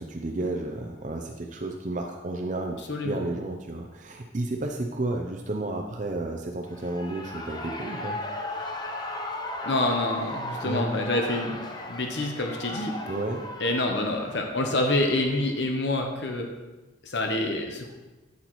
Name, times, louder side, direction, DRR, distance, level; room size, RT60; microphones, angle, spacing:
voice 1, 0.0-8.2 10.6-10.9 13.1-13.4, right 2 dB, 40° right, 2 dB, 0.6 m, -32 dB
Shout / Cheering, 6.7-15.6, left 1 dB, 20° left, 0.7 m, -36 dB
voice 2, 9.6-11.6 11.9-13.0 13.6-16.5 17.0-17.9, left 2 dB, 60° left, 3 dB, 0.9 m, -27 dB
9.8 x 8.0 x 3.1 m, 1.2 s
head